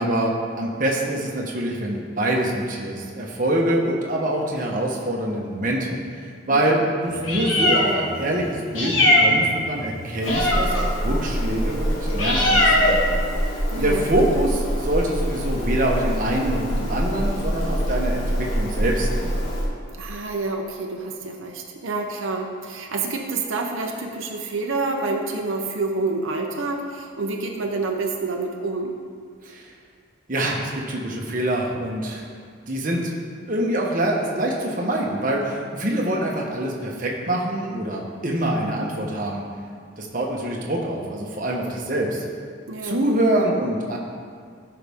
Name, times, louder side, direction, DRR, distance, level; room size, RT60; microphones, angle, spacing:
voice 1, 0.0-5.9 6.2-19.3 29.4-29.7 30.3-32.3 32.7-33.1 33.5-39.4 40.0-42.2 42.8-44.0, right 1 dB, 40° right, -2 dB, 1.2 m, -25 dB
voice 2, 6.5-6.8 13.7-14.0 14.4-14.5 20.0-28.9 42.7-43.0, right 3 dB, 80° right, 1 dB, 0.8 m, -28 dB
Meow, 7.1-19.6, equal, 90° left, 1.9 m, -23 dB
14.5 x 5.8 x 3.6 m, 2.1 s
head